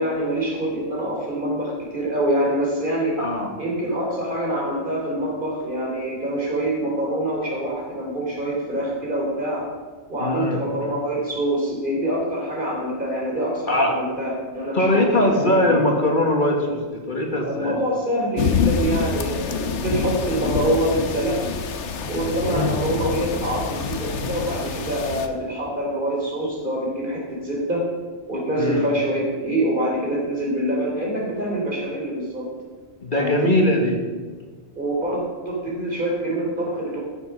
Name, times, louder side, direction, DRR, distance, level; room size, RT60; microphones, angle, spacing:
voice 1, 0.0-3.2 3.6-9.7 10.1-16.0 17.3-21.4 22.1-27.8 28.3-32.4 33.1-33.6 34.7-37.0, right 1 dB, 45° right, -3 dB, 3.4 m, -25 dB
voice 2, 3.2-3.5 10.2-10.6 13.7-13.9 14.7-17.8 22.5-22.8 28.6-28.8 33.0-34.0, left 1 dB, 45° left, 2 dB, 1.6 m, -21 dB
sound 1, 18.4-25.3, left 5 dB, 85° left, 1.2 m, -26 dB
13.0 x 7.1 x 6.0 m, 1.5 s
omnidirectional pair, 1.2 m